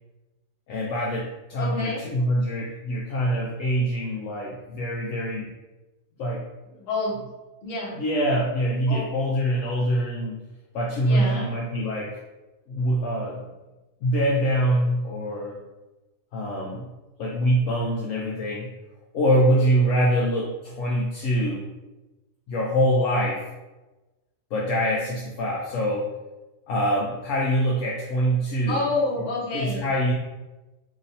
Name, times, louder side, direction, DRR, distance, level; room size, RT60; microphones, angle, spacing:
voice 1, 0.7-5.5 6.2-6.4 8.0-10.3 10.7-12.2 12.7-13.4 14.0-15.5 16.3-16.9 17.2-18.7 19.1-21.6 22.5-23.4 24.5-26.1 26.7-28.9 29.5-30.1, equal, 75° left, -2 dB, 0.9 m, -24 dB
voice 2, 1.6-2.0 6.7-7.1 7.6-8.0 8.9-9.0 11.0-11.5 28.7-29.8, left 2 dB, 50° left, -5 dB, 1.1 m, -28 dB
2.9 x 2.6 x 4.0 m, 1.1 s
omnidirectional pair, 1.4 m